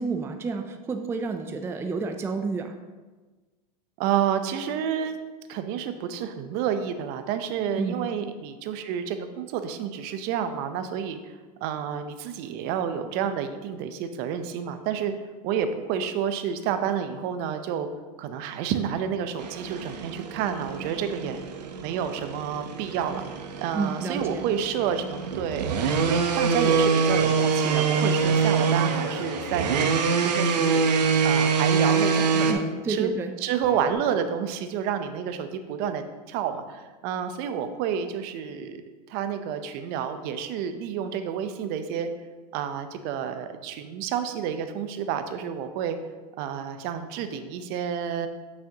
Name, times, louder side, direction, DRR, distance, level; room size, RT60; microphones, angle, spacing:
voice 1, 0.0-2.7 7.8-8.0 23.7-24.4 32.2-33.3, right 4 dB, 10° right, 6 dB, 0.4 m, -30 dB
voice 2, 4.0-5.2 5.5-11.2 11.6-15.1 15.4-17.9 18.2-21.4 21.8-23.3 23.6-25.7 26.1-33.1 33.4-38.8 39.1-42.1 42.5-46.0 46.4-48.3, right 8 dB, 50° right, 9 dB, 0.7 m, -29 dB
sound 1, 19.4-32.5, right 5 dB, 85° right, 0.8 m, -25 dB
sound 2, 25.7-31.5 33.6-33.9, left 3 dB, 85° left, 1.2 m, -39 dB
8.3 x 6.4 x 2.8 m, 1.3 s
hypercardioid pair, 115°, 21 cm